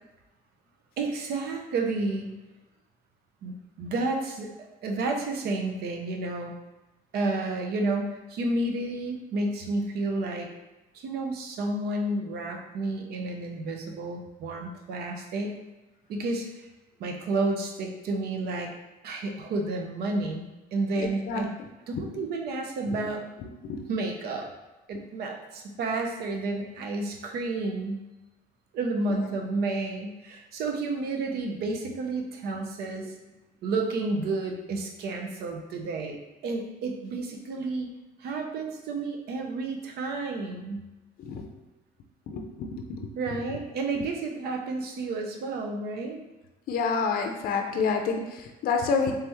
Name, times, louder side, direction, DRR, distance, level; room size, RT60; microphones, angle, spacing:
voice 1, 1.0-2.3 3.4-6.5 7.1-10.5 10.9-15.6 16.1-16.7 17.0-18.7 19.0-21.6 21.9-23.3 23.9-24.5 24.9-28.0 28.7-33.2 33.6-37.9 38.2-40.8 43.1-46.2, right 2 dB, 70° right, 3 dB, 0.7 m, -31 dB
voice 2, 21.0-21.4 22.0-22.1 22.9-23.0 23.6-23.9 29.1-29.2 41.2-41.5 42.3-43.1 46.7-49.1, left 5 dB, 60° left, 4 dB, 0.5 m, -28 dB
3.3 x 3.3 x 3.0 m, 1.0 s
cardioid pair, 110°, 17 cm